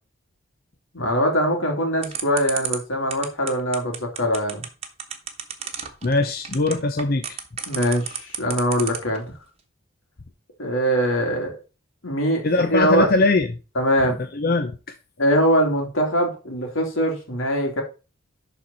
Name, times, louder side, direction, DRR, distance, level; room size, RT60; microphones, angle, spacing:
voice 1, 0.9-4.6 7.7-9.2 10.6-11.5 12.0-13.1 13.7-14.2 15.2-17.8, equal, 85° left, 3.0 m, -22 dB
sound 1, 2.0-9.2, right 8 dB, 30° right, 1.2 m, -30 dB
voice 2, 6.0-7.4 12.4-13.5 14.3-14.7, left 2 dB, 50° left, 0.7 m, -21 dB
11.0 x 4.4 x 4.1 m
head